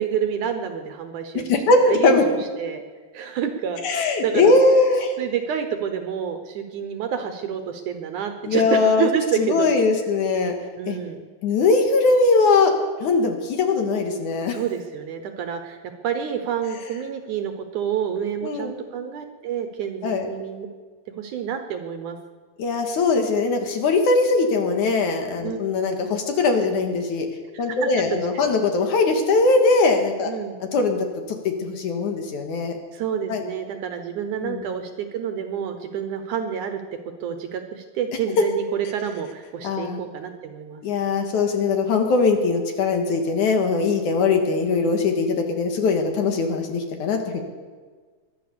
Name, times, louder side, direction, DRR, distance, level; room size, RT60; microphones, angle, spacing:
voice 1, 0.0-1.4 1.9-2.8 3.1-4.5 5.2-9.7 10.8-11.2 14.5-15.8 16.0-20.7 21.2-22.2 25.4-25.6 27.5-27.9 28.3-28.5 30.2-30.6 32.9-36.8 37.2-40.8, right 8 dB, 70° right, 7 dB, 2.3 m, -28 dB
voice 2, 1.5-2.2 3.8-5.2 8.4-9.1 9.4-10.5 10.9-11.0 11.4-12.7 13.0-14.6 18.4-18.7 20.0-20.3 22.6-27.3 27.6-30.3 30.7-32.7 33.3-33.4 34.4-34.7 39.6-40.0 40.8-47.4, left 3 dB, 65° left, 4 dB, 3.0 m, -20 dB
22.5 x 9.3 x 6.9 m, 1.5 s
omnidirectional pair, 4.0 m